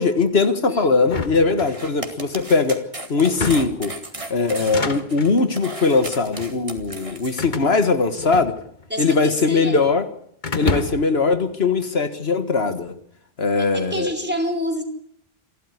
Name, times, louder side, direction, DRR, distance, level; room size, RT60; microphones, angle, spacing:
voice 1, 0.0-4.0 4.3-8.6 9.0-10.1 10.5-13.0 13.4-14.1, left 4 dB, 75° left, 10 dB, 1.9 m, -20 dB
voice 2, 0.7-1.0 8.9-9.8 13.6-14.8, equal, 10° right, 3 dB, 4.3 m, -28 dB
sound 1, 1.0-2.2 3.2-3.9 4.5-5.4 6.2-6.5 7.4-8.9 9.2-9.9 10.4-11.2, left 4 dB, 50° left, 1.6 m, -29 dB
sound 2, 1.6-7.4, right 1 dB, 30° right, 2.4 m, -35 dB
28.0 x 12.5 x 9.8 m, 0.69 s
omnidirectional pair, 1.0 m